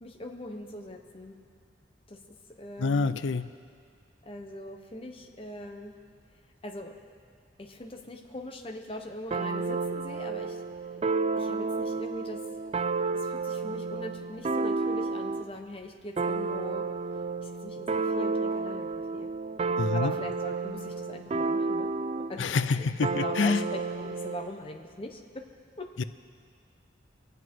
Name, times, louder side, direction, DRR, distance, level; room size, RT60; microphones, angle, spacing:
voice 1, 0.0-1.3 2.1-2.2 2.6-3.2 4.3-5.9 6.6-6.9 7.6-10.6 11.4-12.4 13.2-16.8 17.4-19.3 19.9-21.9 22.3-22.9 23.1-25.2 25.8-25.9, left 1 dB, 30° left, 3 dB, 0.9 m, -41 dB
voice 2, 2.8-3.5 19.8-20.1 22.4-23.6 26.0-26.1, left 4 dB, 90° left, 13 dB, 0.5 m, -27 dB
sound 1, 9.3-15.5 16.2-22.4 23.0-24.5, right 4 dB, 35° right, 0.3 m, -31 dB
24.0 x 8.0 x 4.6 m, 2.2 s
head